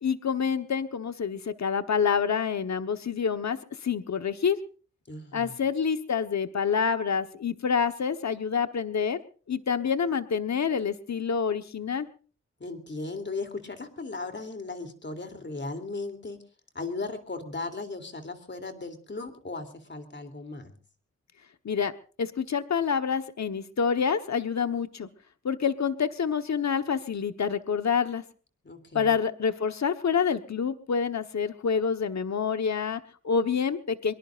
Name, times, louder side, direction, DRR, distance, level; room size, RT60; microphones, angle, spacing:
voice 1, 0.0-4.6 5.3-9.2 9.5-12.1 21.6-21.9 22.2-25.1 25.4-28.2 28.9-34.1, left 6 dB, 70° left, 9 dB, 1.2 m, -27 dB
voice 2, 5.1-5.6 12.6-16.4 16.7-20.7 28.6-29.2, left 3 dB, 40° left, 7 dB, 3.1 m, -37 dB
24.0 x 22.5 x 2.5 m, 0.39 s
wide cardioid pair, 110°, 29 cm